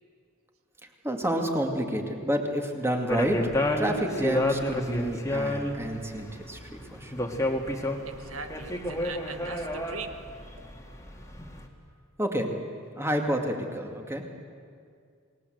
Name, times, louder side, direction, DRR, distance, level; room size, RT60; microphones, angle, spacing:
voice 1, 1.0-3.4 3.8-7.3 12.2-12.5 13.0-14.2, right 1 dB, 10° right, 3 dB, 2.3 m, -29 dB
sound 1, 3.1-11.6, left 1 dB, 15° left, 2.0 m, -31 dB
voice 2, 8.0-10.2 10.5-10.6, right 4 dB, 80° right, 7 dB, 1.7 m, -41 dB
28.0 x 20.0 x 7.9 m, 2.2 s
head